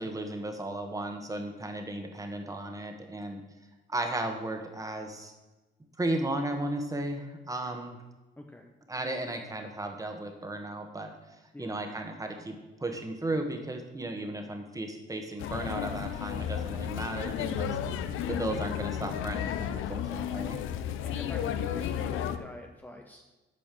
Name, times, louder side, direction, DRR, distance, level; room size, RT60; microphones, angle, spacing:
voice 1, 0.0-3.4 3.9-5.3 6.0-8.0 8.9-11.1 11.6-17.8 18.3-20.6, right 1 dB, 15° right, 4 dB, 1.5 m, -35 dB
voice 2, 8.4-8.7 11.5-11.7 20.1-20.3 21.0-23.2, left 1 dB, 10° left, 2 dB, 0.8 m, -46 dB
sound 1, 15.4-22.4, left 9 dB, 85° left, 0.6 m, -33 dB
8.7 x 5.1 x 7.6 m, 1.1 s
cardioid pair, 90°, 20 cm